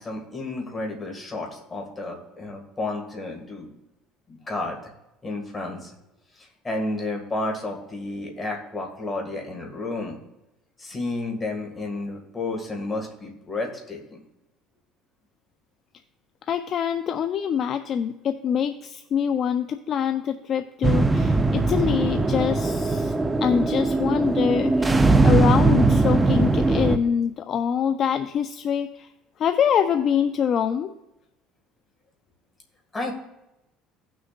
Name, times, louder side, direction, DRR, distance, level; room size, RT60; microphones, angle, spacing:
voice 1, 0.0-3.7 4.3-4.8 5.2-5.9 6.4-10.2 10.8-14.2 32.9-33.1, left 2 dB, 20° left, 0 dB, 2.0 m, -31 dB
voice 2, 16.5-23.1 23.4-25.0 25.2-29.1 29.4-30.9, left 8 dB, 45° left, 8 dB, 0.4 m, -25 dB
sound 1, 20.8-27.0, right 3 dB, 15° right, 0.5 m, -20 dB
17.0 x 6.2 x 2.5 m, 0.93 s
cardioid pair, 125°, 0 cm